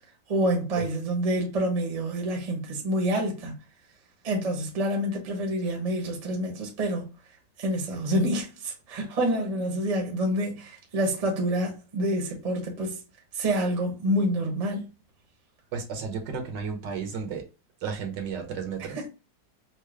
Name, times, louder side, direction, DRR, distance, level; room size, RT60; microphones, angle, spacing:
voice 1, 0.3-3.5 4.2-7.0 7.6-13.0 13.3-14.8, right 1 dB, 30° right, 0.8 m, -27 dB
voice 2, 15.7-17.4 17.8-19.0, right 6 dB, 75° right, 1.5 m, -33 dB
4.5 x 2.0 x 3.2 m
omnidirectional pair, 2.0 m